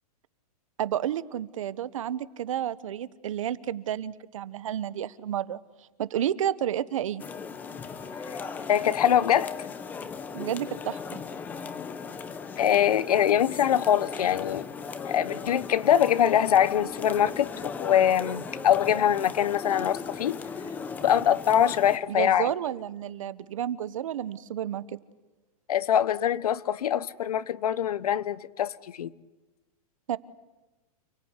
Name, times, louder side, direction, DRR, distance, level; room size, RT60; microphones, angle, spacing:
voice 1, 0.8-5.6 6.0-7.2 10.3-11.2 22.1-25.0 30.1-30.2, right 10 dB, 60° right, 1.1 m, -31 dB
sound 1, 7.2-22.0, left 5 dB, 10° left, 0.9 m, -38 dB
voice 2, 8.7-9.5 12.6-14.7 15.0-20.4 21.0-22.5 25.7-28.7 29.0-29.1, left 10 dB, 75° left, 1.2 m, -23 dB
29.0 x 18.0 x 9.9 m
supercardioid pair, 180°, 19 cm